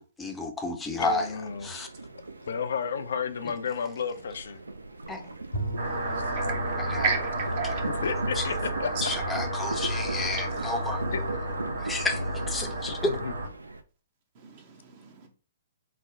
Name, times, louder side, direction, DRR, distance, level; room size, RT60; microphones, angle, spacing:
voice 1, 0.0-1.2 1.6-1.9 5.1-5.2 6.8-7.0 8.4-8.5 9.0-11.0 11.8-13.1, left 2 dB, 10° left, 0.5 m, -31 dB
voice 2, 1.0-1.9 2.5-4.6 6.2-6.3 8.0-8.9 11.1-11.2 13.1-13.3, left 6 dB, 60° left, 0.3 m, -32 dB
sound 1, 1.4-13.8, right 3 dB, 80° right, 0.4 m, -41 dB
Bowed string instrument, 5.5-10.3, right 1 dB, 90° left, 0.8 m, -40 dB
voice 3, 5.8-6.8 7.0-7.9 14.4-15.3, right 5 dB, 40° right, 0.6 m, -33 dB
sound 2, 5.8-13.5, right 1 dB, 65° right, 0.9 m, -31 dB
3.2 x 2.1 x 3.6 m
figure-of-eight pair, 120°, 0 cm